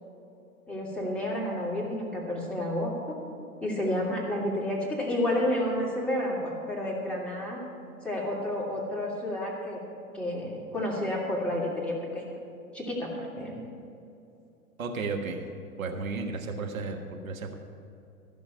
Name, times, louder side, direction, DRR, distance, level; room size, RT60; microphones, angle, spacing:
voice 1, 0.7-3.2 3.6-7.6 8.0-9.8 10.1-12.3 12.7-13.6, left 1 dB, 5° left, -5 dB, 2.7 m, -30 dB
voice 2, 14.8-15.4 15.8-17.0 17.2-17.5, right 4 dB, 65° right, 3 dB, 1.5 m, -33 dB
14.5 x 6.2 x 8.5 m, 2.7 s
figure-of-eight pair, 100°, 43 cm